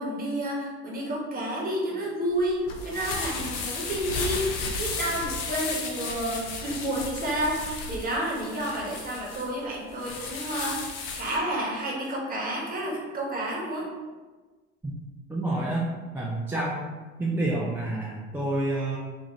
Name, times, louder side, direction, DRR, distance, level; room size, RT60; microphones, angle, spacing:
voice 1, 0.0-10.8 11.1-13.9, right 1 dB, 25° right, -3 dB, 1.0 m, -30 dB
sound 1, 2.3-11.4, left 4 dB, 60° left, 0.6 m, -34 dB
voice 2, 15.3-15.9 16.1-16.9 17.2-19.0, right 2 dB, 5° right, -4 dB, 0.3 m, -28 dB
2.6 x 2.4 x 3.0 m, 1.3 s
hypercardioid pair, 60°, 33 cm